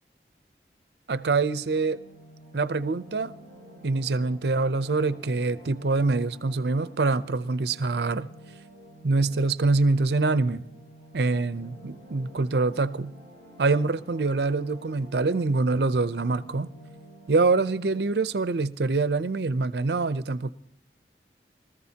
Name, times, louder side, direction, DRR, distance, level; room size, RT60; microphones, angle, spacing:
sound 1, 1.1-18.4, right 1 dB, 35° left, 4.9 m, -50 dB
voice 1, 1.1-2.0 2.5-3.3 3.8-8.3 9.0-10.6 11.1-13.1 13.6-16.7 17.3-20.5, right 3 dB, 65° right, 0.6 m, -25 dB
24.5 x 14.0 x 2.8 m
head